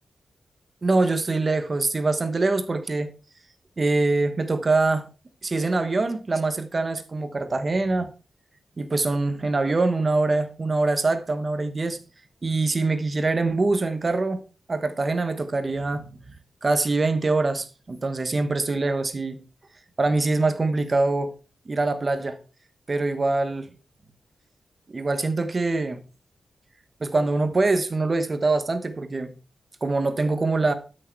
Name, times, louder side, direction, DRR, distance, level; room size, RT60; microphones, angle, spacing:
voice 1, 0.8-3.1 3.8-5.1 5.4-8.1 8.8-12.0 12.4-14.4 14.7-16.3 16.6-19.4 20.0-21.3 21.7-22.4 22.9-23.7 24.9-26.0 27.0-29.4 29.8-30.7, right 3 dB, 30° right, 1.1 m, -24 dB
13.5 x 6.4 x 4.5 m
wide cardioid pair, 175°, 0 cm